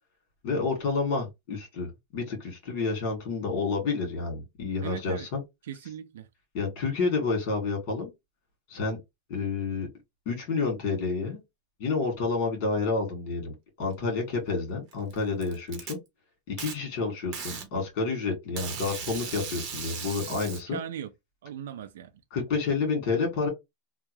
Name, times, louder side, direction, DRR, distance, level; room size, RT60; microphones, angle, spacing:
voice 1, 0.4-5.4 6.5-8.1 8.7-9.0 9.3-9.9 10.3-11.4 11.8-16.0 16.5-20.8 22.3-23.5, left 4 dB, 45° left, 2.2 m, -29 dB
voice 2, 4.8-5.3 5.7-6.3 20.7-21.1 21.4-22.1, right 9 dB, 90° right, 0.4 m, -38 dB
Packing tape duct tape, 14.9-15.9 16.6-16.7 17.3-17.7 18.6-20.6, right 6 dB, 35° right, 1.2 m, -37 dB
3.6 x 2.4 x 3.2 m
supercardioid pair, 160°, 0 cm